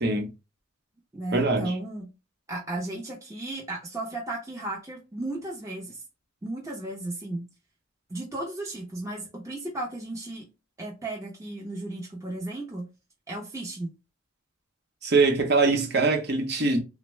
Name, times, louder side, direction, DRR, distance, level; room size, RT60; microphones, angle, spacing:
voice 1, 0.0-0.3 1.3-1.7 15.0-16.8, right 3 dB, 55° right, 0.8 m, -23 dB
voice 2, 1.1-2.1 2.5-6.0 6.4-7.5 8.1-10.5 10.8-12.9 13.3-13.9, right 2 dB, 15° right, 0.6 m, -34 dB
3.5 x 2.1 x 3.1 m
head